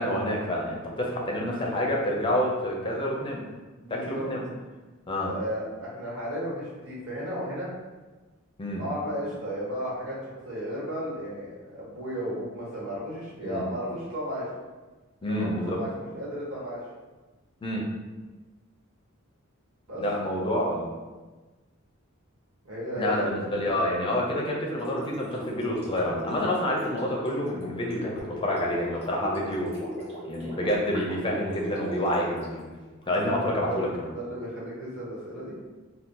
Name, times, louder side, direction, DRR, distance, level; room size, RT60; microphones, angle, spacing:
voice 1, 0.0-3.4 3.9-4.4 5.1-5.3 8.6-8.8 13.4-13.6 15.2-15.8 17.6-17.8 20.0-20.9 23.0-29.8 30.3-32.6 33.1-34.1, left 1 dB, 25° left, -2 dB, 0.5 m, -28 dB
voice 2, 3.8-4.3 5.3-7.7 8.8-14.5 15.2-16.8 19.9-20.0 20.3-20.6 22.6-23.4 23.6-23.9 33.7-35.6, equal, 85° right, -7 dB, 1.3 m, -34 dB
Gurgling, 24.8-33.1, equal, 30° right, 1.0 m, -38 dB
2.7 x 2.3 x 3.6 m, 1.2 s
head